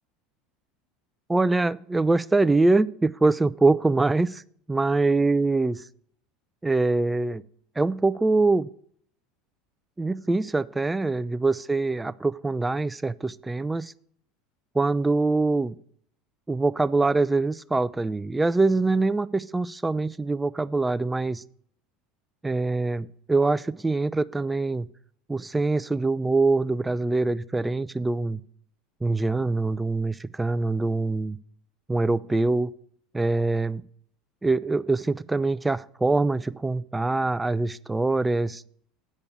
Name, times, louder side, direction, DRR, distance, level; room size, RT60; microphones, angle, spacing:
voice 1, 1.3-4.4 4.7-5.8 6.6-7.4 7.8-8.7 10.0-13.9 14.7-15.7 16.5-21.4 22.4-24.9 25.3-28.4 29.0-31.4 31.9-32.7 33.1-33.8 34.4-38.6, right 3 dB, 10° right, 16 dB, 0.4 m, -24 dB
8.5 x 5.3 x 7.0 m, 0.62 s
hypercardioid pair, 85°, 0 cm